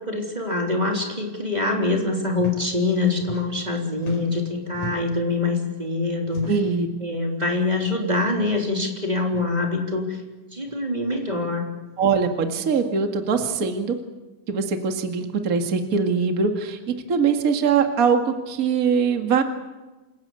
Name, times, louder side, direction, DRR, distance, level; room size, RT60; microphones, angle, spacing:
voice 1, 0.0-6.5 7.0-10.2 10.5-11.7, left 3 dB, 15° right, 1 dB, 3.4 m, -24 dB
sound 1, 2.3-2.6 2.9-3.7 4.0-5.2 6.2-6.8 7.7-7.9 8.2-8.3 9.2-9.5 10.6-10.7 11.9-12.2 13.3-13.5, left 1 dB, 60° left, 5.7 m, -39 dB
voice 2, 6.5-6.9 12.0-14.0 14.5-19.4, right 5 dB, 30° right, 5 dB, 2.0 m, -22 dB
28.0 x 16.5 x 8.3 m, 1.1 s
omnidirectional pair, 3.6 m